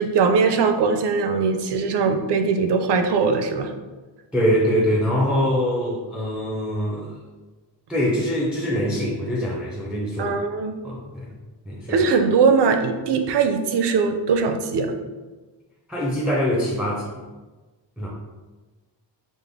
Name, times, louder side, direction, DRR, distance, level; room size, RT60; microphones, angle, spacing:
voice 1, 0.0-3.7 10.2-10.8 11.9-14.9, right 5 dB, 65° right, 6 dB, 0.5 m, -20 dB
voice 2, 4.3-7.1 7.9-10.4 10.8-11.3 11.7-12.1 15.9-17.2 18.0-18.1, equal, ahead, -5 dB, 0.5 m, -23 dB
5.2 x 2.1 x 3.4 m, 1.2 s
wide cardioid pair, 155°, 45 cm